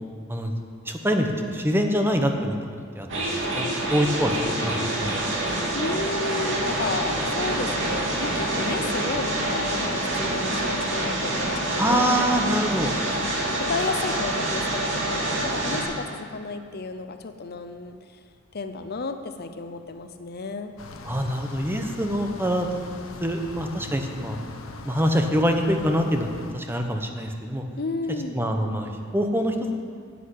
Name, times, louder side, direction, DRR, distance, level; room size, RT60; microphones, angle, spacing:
voice 1, 0.9-2.6 2.9-4.3 4.6-4.7 5.0-5.2 11.8-12.9 21.1-22.8 23.2-24.4 24.8-26.3 26.5-27.6 28.3-29.7, equal, 10° right, 4 dB, 1.0 m, -25 dB
sound 1, 3.1-15.8, right 1 dB, 65° right, 2.8 m, -26 dB
voice 2, 5.7-12.1 13.3-18.0 18.5-20.7 27.8-28.4, left 3 dB, 50° left, 8 dB, 0.6 m, -32 dB
sound 2, 20.8-26.5, left 2 dB, 85° left, 0.9 m, -40 dB
10.0 x 8.4 x 8.3 m, 2.1 s
head